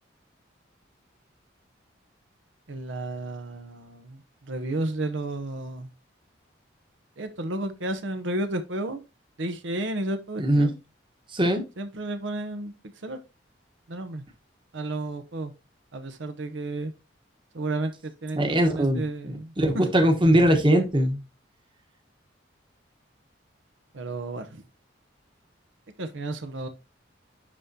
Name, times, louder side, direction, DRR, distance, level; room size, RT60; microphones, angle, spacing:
voice 1, 2.7-5.9 7.2-9.0 9.4-10.7 11.8-12.7 13.0-13.2 13.9-14.2 14.7-15.5 15.9-16.9 17.5-19.9 23.9-24.6 26.0-26.7, right 2 dB, 80° right, 0.8 m, -32 dB
voice 2, 10.4-10.7 11.3-11.6 18.4-21.2, right 1 dB, 25° right, 1.2 m, -21 dB
11.0 x 3.7 x 2.8 m
head